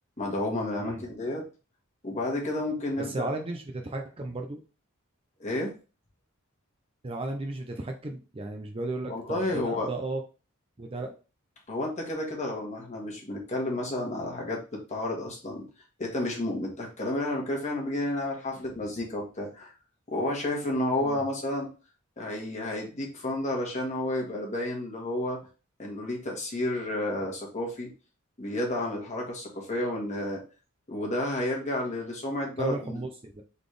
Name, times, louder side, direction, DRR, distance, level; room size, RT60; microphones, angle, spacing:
voice 1, 0.2-1.5 2.0-3.3 5.4-5.7 9.1-9.9 11.7-15.6 16.0-19.7 20.1-21.7 22.2-25.4 25.8-27.9 28.4-30.4 30.9-33.0, left 1 dB, 35° left, -1 dB, 1.4 m, -31 dB
voice 2, 3.1-4.6 7.0-10.2 10.8-11.2 21.0-21.2 32.6-33.4, right 2 dB, 25° right, 4 dB, 0.5 m, -34 dB
4.0 x 3.5 x 3.2 m, 0.33 s
head